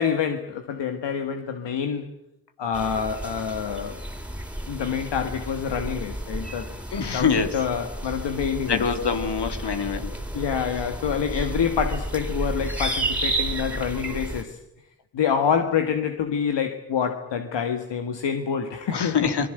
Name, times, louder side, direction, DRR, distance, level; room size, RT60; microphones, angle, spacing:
voice 1, 0.0-2.1 2.6-4.0 4.7-6.8 7.1-8.8 10.3-14.6 15.1-19.3, left 7 dB, 85° left, 6 dB, 1.7 m, -27 dB
sound 1, 2.7-14.4, right 1 dB, 5° right, 3.6 m, -32 dB
voice 2, 6.9-7.6 8.7-10.1 18.9-19.5, left 6 dB, 70° left, 7 dB, 3.0 m, -24 dB
27.5 x 21.5 x 7.9 m, 0.83 s
cardioid pair, 50°, 42 cm